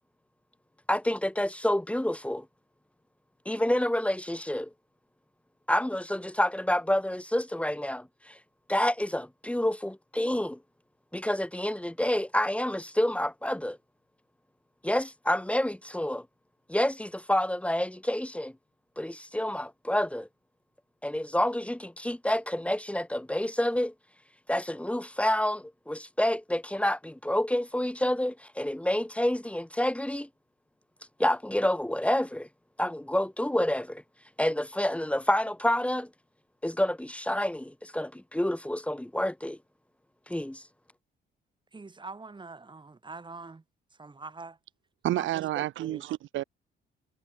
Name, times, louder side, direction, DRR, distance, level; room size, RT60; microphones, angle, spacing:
voice 1, 0.9-2.5 3.5-4.7 5.7-8.4 8.7-10.6 11.1-13.8 14.8-16.3 16.7-18.5 19.0-20.3 21.0-23.9 24.5-30.3 31.2-32.5 32.8-34.0 34.4-36.1 36.6-39.6 40.3-40.6, left 1 dB, 5° left, 2.2 m, -28 dB
voice 2, 41.7-43.6 44.0-44.6 45.1-45.3 45.6-46.0, right 3 dB, 25° right, 3.3 m, -43 dB
voice 3, 45.0-46.4, right 14 dB, 75° right, 0.8 m, -30 dB
cardioid pair, 90°, 20 cm